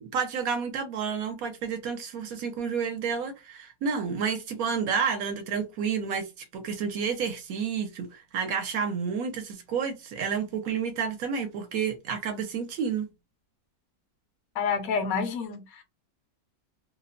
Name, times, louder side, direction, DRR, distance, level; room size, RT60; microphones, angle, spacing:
voice 1, 0.0-13.1, right 6 dB, 70° right, 1.1 m, -30 dB
voice 2, 14.6-15.8, left 5 dB, 75° left, 1.1 m, -28 dB
2.8 x 2.1 x 2.4 m
omnidirectional pair, 1.6 m